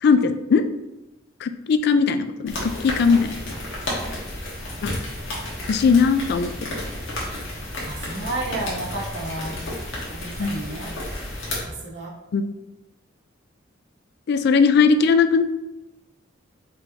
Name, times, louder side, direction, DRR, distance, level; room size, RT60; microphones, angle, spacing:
voice 1, 0.0-0.7 1.4-3.3 4.8-4.9 5.7-6.7 10.4-10.5 12.3-12.4 14.3-15.4, left 5 dB, 55° left, 10 dB, 0.3 m, -19 dB
sound 1, 2.5-11.6, left 1 dB, 80° left, 1.3 m, -32 dB
voice 2, 7.8-9.6 10.1-10.9 11.6-12.1, right 2 dB, 60° right, -3 dB, 0.9 m, -31 dB
5.4 x 3.1 x 2.7 m, 0.98 s
head